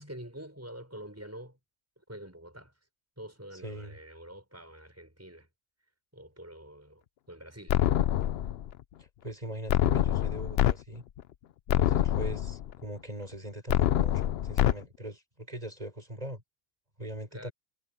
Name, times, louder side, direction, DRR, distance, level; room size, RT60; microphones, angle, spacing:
voice 1, 0.0-1.6 2.1-2.7 3.2-5.5 6.1-8.0 17.3-17.5, right 1 dB, 10° right, 6.4 m, -46 dB
voice 2, 3.5-4.0 9.0-11.0 11.8-16.4 17.0-17.5, right 1 dB, 30° right, 6.9 m, -41 dB
sound 1, 7.7-8.7 9.7-10.7 11.2-11.3 11.7-12.7 13.7-14.7, left 11 dB, 60° left, 0.7 m, -25 dB
omnidirectional pair, 1.4 m